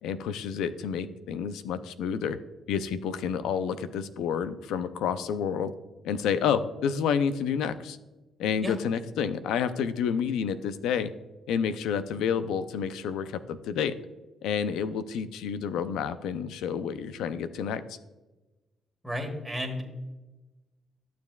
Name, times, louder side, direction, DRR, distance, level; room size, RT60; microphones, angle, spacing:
voice 1, 0.0-2.4 2.7-5.7 6.0-8.0 8.4-11.1 11.5-13.9 14.4-18.0, left 7 dB, 85° left, 12 dB, 0.5 m, -29 dB
voice 2, 19.0-19.8, equal, ahead, 1 dB, 1.6 m, -32 dB
12.0 x 6.9 x 2.3 m, 1.1 s
cardioid pair, 90°, 0 cm